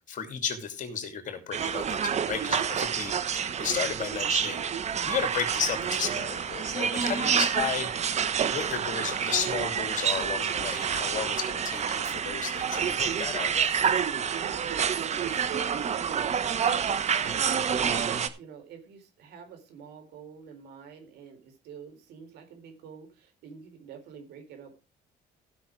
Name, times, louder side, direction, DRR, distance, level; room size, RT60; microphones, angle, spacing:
voice 1, 0.1-4.6 5.1-7.9 8.5-13.7, left 7 dB, 50° left, 7 dB, 2.8 m, -33 dB
sound 1, 1.5-18.3, right 7 dB, 40° right, 1.1 m, -28 dB
voice 2, 4.9-5.3 7.0-7.4 14.0-18.0 18.4-24.8, right 7 dB, 75° right, 6 dB, 4.0 m, -45 dB
15.5 x 6.1 x 4.7 m, 0.30 s
cardioid pair, 110°, 17 cm